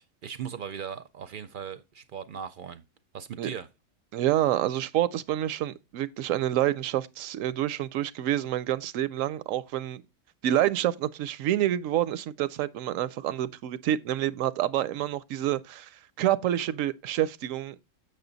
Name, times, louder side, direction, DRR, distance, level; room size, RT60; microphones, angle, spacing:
voice 1, 0.0-2.8 3.1-3.7, right 7 dB, 55° right, 0.6 m, -38 dB
voice 2, 4.1-10.0 10.4-15.9 16.2-17.8, right 12 dB, 85° right, 1.0 m, -28 dB
6.9 x 6.5 x 3.9 m
omnidirectional pair, 1.3 m